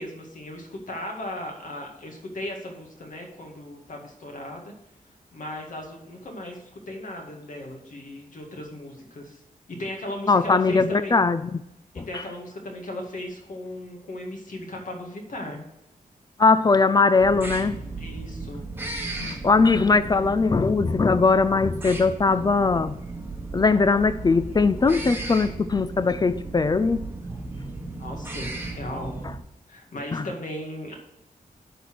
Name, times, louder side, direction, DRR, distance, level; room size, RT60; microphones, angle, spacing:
voice 1, 0.0-4.7 5.3-6.6 6.9-9.4 9.7-11.1 12.1-15.6 18.0-18.6 28.0-29.1 29.7-31.0, left 1 dB, 60° left, 1 dB, 2.1 m, -36 dB
voice 2, 10.3-11.6 12.0-12.2 16.4-17.8 19.2-22.9 23.5-27.0 30.1-30.3, left 4 dB, 30° left, 13 dB, 0.3 m, -20 dB
sound 1, 17.2-29.4, right 3 dB, 15° right, 1.1 m, -35 dB
11.0 x 4.2 x 6.3 m, 0.90 s
wide cardioid pair, 155°, 15 cm